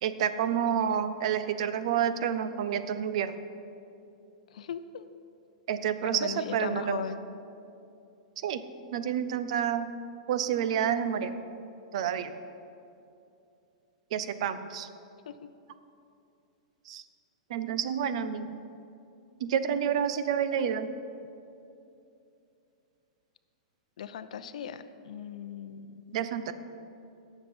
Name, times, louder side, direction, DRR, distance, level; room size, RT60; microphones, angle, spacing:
voice 1, 0.0-3.3 5.7-7.0 8.4-8.6 8.9-9.9 10.3-11.3 11.9-12.3 14.1-14.9 16.9-17.0 17.5-18.5 19.4-20.9 26.1-26.5, right 8 dB, 60° right, 12 dB, 0.7 m, -29 dB
voice 2, 4.5-5.1 6.0-7.2 15.3-15.5 24.0-26.2, left 8 dB, 75° left, 12 dB, 0.6 m, -38 dB
18.5 x 6.9 x 4.4 m, 2.7 s
hypercardioid pair, 145°, 4 cm